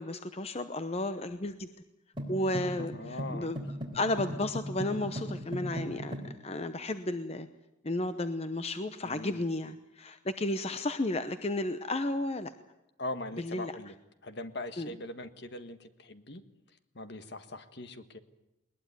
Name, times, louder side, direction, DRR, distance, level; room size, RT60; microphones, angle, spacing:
voice 1, 0.0-1.7 2.3-3.6 3.9-7.5 7.8-12.5 13.4-13.7 14.8-14.9, left 1 dB, 30° left, 10 dB, 0.8 m, -33 dB
sound 1, 2.2-6.3, equal, 25° right, 4.0 m, -38 dB
voice 2, 2.8-3.5 9.0-9.4 13.0-13.9 14.2-16.4 16.9-18.2, left 2 dB, 55° left, 10 dB, 1.6 m, -41 dB
21.0 x 20.5 x 9.5 m, 0.91 s
head